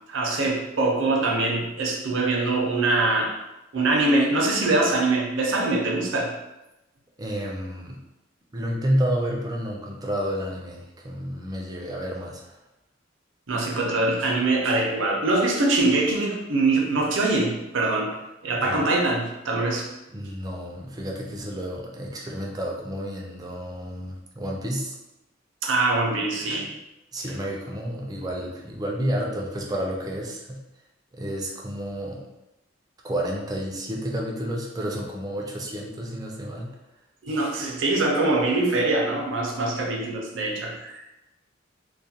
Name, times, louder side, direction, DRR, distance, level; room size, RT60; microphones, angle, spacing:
voice 1, 0.1-3.3 3.7-6.3 13.5-18.1 18.4-19.9 25.6-26.7 37.2-41.1, right 2 dB, 70° right, -1 dB, 0.6 m, -23 dB
voice 2, 7.2-8.0 8.5-12.6 18.6-18.9 20.1-24.9 27.1-30.6 31.1-32.2 33.0-36.7, equal, 20° right, -1 dB, 0.4 m, -30 dB
2.3 x 2.1 x 2.7 m, 0.95 s
head